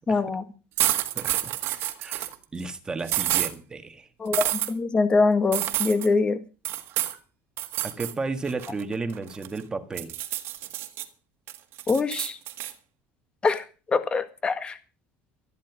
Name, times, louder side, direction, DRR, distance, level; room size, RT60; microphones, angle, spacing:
voice 1, 0.1-0.5 4.2-6.4 11.9-12.4 13.4-14.8, left 4 dB, 20° left, 11 dB, 1.7 m, -24 dB
sound 1, 0.8-2.3 3.1-3.5 4.3-4.7 5.5-6.1 6.6-7.2 7.6-8.1 8.5-9.6 10.0-11.0 11.5-12.7, right 14 dB, 55° right, 1.7 m, -28 dB
voice 2, 2.0-4.1 7.8-10.1, right 3 dB, 15° right, 8 dB, 1.7 m, -33 dB
13.0 x 12.0 x 6.0 m, 0.34 s
cardioid pair, 155°, 5 cm